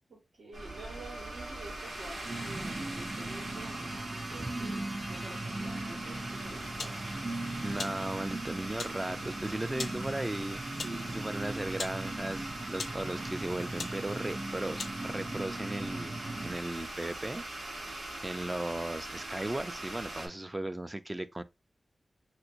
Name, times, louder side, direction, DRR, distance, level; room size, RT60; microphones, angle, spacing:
voice 1, 0.1-7.8 8.2-8.5 9.1-9.3 10.8-11.6, right 2 dB, 90° right, 1.7 m, -50 dB
sound 1, 0.5-20.3, right 2 dB, 65° right, 1.2 m, -41 dB
sound 2, 2.2-16.5, right 2 dB, 45° right, 1.4 m, -40 dB
sound 3, 6.8-7.0 7.8-8.0 8.8-9.0 9.8-10.0 10.8-11.0 11.8-12.0 12.7-13.0 13.8-14.0 14.8-15.0, left 4 dB, 90° left, 0.5 m, -39 dB
voice 2, 7.6-10.6 11.1-17.9 18.2-21.4, right 1 dB, 20° right, 0.3 m, -37 dB
3.4 x 2.9 x 2.5 m
wide cardioid pair, 75°, 0 cm